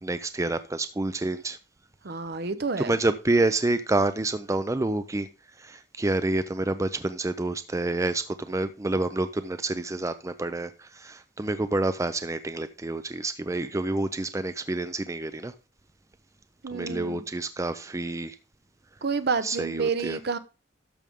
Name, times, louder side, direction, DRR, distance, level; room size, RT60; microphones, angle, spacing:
voice 1, 0.0-1.6 2.8-5.3 5.6-15.5 16.7-18.3 19.4-20.2, right 2 dB, 15° right, 0.5 m, -28 dB
voice 2, 2.0-3.0 16.6-17.2 19.0-20.4, right 5 dB, 60° right, 0.8 m, -29 dB
12.5 x 6.3 x 3.6 m
head